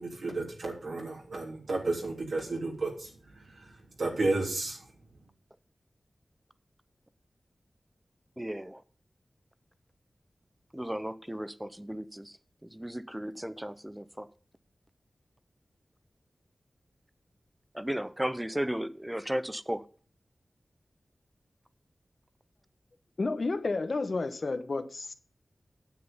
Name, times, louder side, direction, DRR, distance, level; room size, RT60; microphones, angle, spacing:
voice 1, 0.0-4.8, right 2 dB, 80° right, 3.2 m, -33 dB
voice 2, 8.4-8.8 10.7-12.4 12.6-14.3 17.7-19.8, equal, 10° right, 0.7 m, -35 dB
voice 3, 23.2-25.1, left 3 dB, 55° left, 1.0 m, -31 dB
9.6 x 7.7 x 5.5 m
wide cardioid pair, 105°, 0 cm